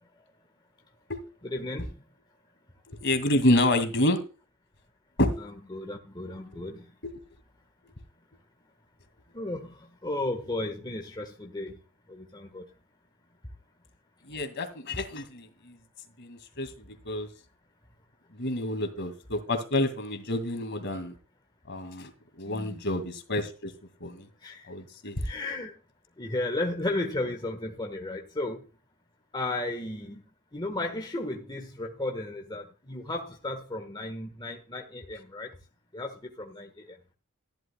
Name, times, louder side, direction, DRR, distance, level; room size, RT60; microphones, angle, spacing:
voice 1, 1.4-1.9 5.4-6.9 9.3-11.8 12.1-12.7 22.5-22.8 24.4-24.7 25.2-25.8 26.2-28.6 29.3-30.2 30.5-35.5 35.9-37.0, left 2 dB, 20° left, 3 dB, 1.3 m, -34 dB
voice 2, 2.9-4.2 5.2-5.4 7.0-7.2 14.2-15.8 16.2-17.3 18.3-21.2 21.7-22.1 22.4-23.7 24.0-24.3 24.7-25.3, left 1 dB, 50° left, 8 dB, 2.2 m, -28 dB
14.5 x 11.5 x 2.2 m, 0.34 s
head